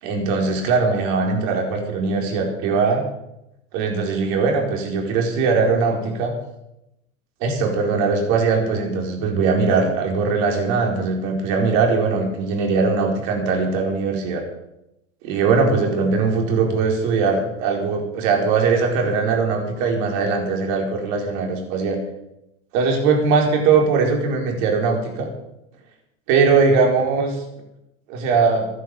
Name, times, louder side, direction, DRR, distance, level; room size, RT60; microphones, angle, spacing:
voice 1, 0.0-3.0 3.7-6.3 7.4-14.4 15.2-22.0 22.7-25.3 26.3-27.4 28.1-28.7, right 4 dB, 50° right, 1 dB, 4.5 m, -20 dB
14.0 x 11.5 x 7.0 m, 0.86 s
hypercardioid pair, 100°, 40 cm